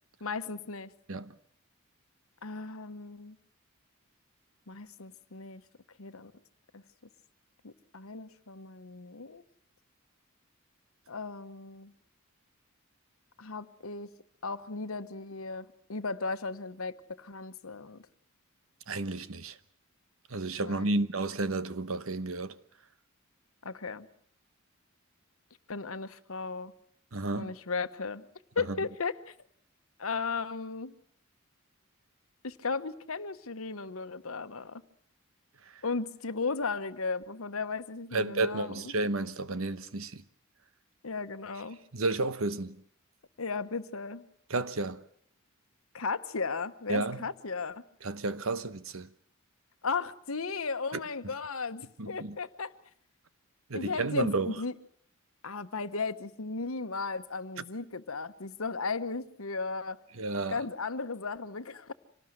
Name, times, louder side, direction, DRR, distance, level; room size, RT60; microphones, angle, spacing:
voice 1, 0.2-0.9 2.4-3.4 4.7-5.6 6.0-6.3 6.7-6.8 7.6-9.4 11.1-11.9 13.4-14.1 14.4-18.1 20.6-21.0 23.6-24.1 25.7-26.7 27.3-28.3 28.5-29.3 30.0-30.9 32.4-34.8 35.8-38.8 41.0-41.8 43.4-44.3 45.9-47.8 49.8-52.7 53.7-54.7 55.4-60.0 60.5-61.9, left 4 dB, 80° left, 1.1 m, -36 dB
voice 2, 18.9-19.6 20.3-22.6 27.1-27.5 28.6-28.8 38.1-40.2 41.9-42.8 44.5-45.0 46.9-47.2 48.0-49.1 52.0-52.4 53.7-54.6 60.2-60.6, right 2 dB, 75° right, 1.1 m, -32 dB
26.0 x 18.5 x 7.9 m
head